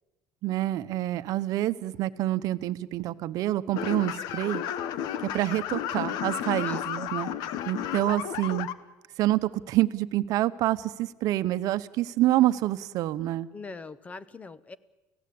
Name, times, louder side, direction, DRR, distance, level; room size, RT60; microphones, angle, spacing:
voice 1, 0.4-4.6 5.2-7.3 7.7-8.7 9.2-13.5, right 15 dB, 60° right, 12 dB, 1.0 m, -27 dB
sound 1, 3.7-8.7, left 10 dB, 70° left, 1.2 m, -32 dB
voice 2, 13.5-14.8, left 4 dB, 20° left, 16 dB, 1.0 m, -41 dB
30.0 x 16.5 x 8.7 m, 1.1 s
cardioid pair, 125°, 7 cm